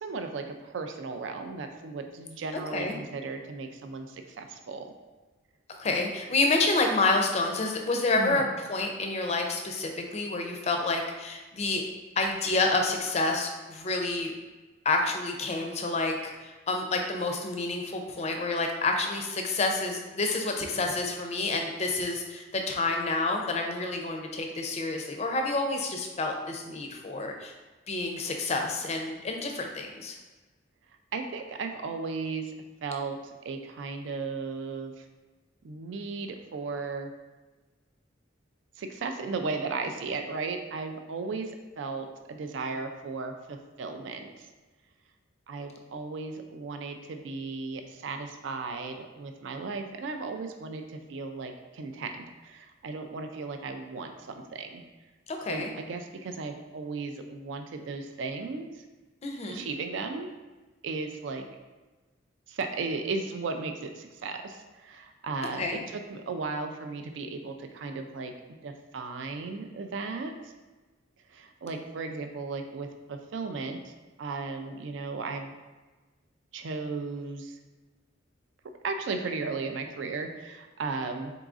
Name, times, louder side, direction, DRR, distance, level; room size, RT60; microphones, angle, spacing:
voice 1, 0.0-4.9 8.2-8.5 31.1-32.5 32.8-35.1 35.6-37.1 38.8-44.5 45.5-54.8 55.5-58.8 59.5-60.3 60.8-61.4 62.5-70.5 71.3-73.9 74.2-75.5 76.5-77.6 78.8-81.3, right 4 dB, 70° right, 6 dB, 0.4 m, -36 dB
voice 2, 2.5-2.9 5.7-11.8 12.2-14.3 14.8-27.5 27.9-30.2 55.3-55.7 59.2-59.6 65.6-65.8, left 3 dB, 35° left, 3 dB, 0.4 m, -29 dB
3.9 x 3.7 x 2.4 m, 1.2 s
head